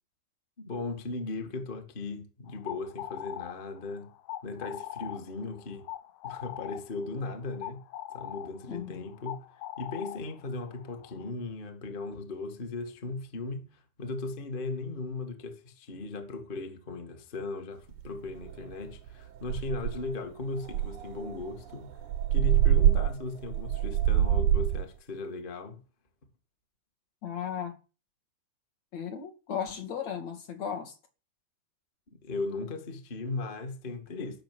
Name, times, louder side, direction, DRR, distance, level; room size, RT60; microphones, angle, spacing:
voice 1, 0.6-4.1 4.4-5.9 6.2-7.8 8.1-9.4 9.8-21.9 22.3-25.8 32.1-34.4, left 3 dB, 25° left, 1.3 m, -37 dB
sound 1, 2.5-11.3, left 13 dB, 85° left, 2.8 m, -42 dB
voice 2, 8.7-9.0 27.2-27.8 28.9-31.0, left 8 dB, 50° left, 3.0 m, -36 dB
sound 2, 18.0-18.1 18.5-18.7 19.1-19.2 19.5-20.1 20.7-24.9, right 11 dB, 75° right, 1.8 m, -25 dB
14.0 x 6.8 x 9.5 m
omnidirectional pair, 4.3 m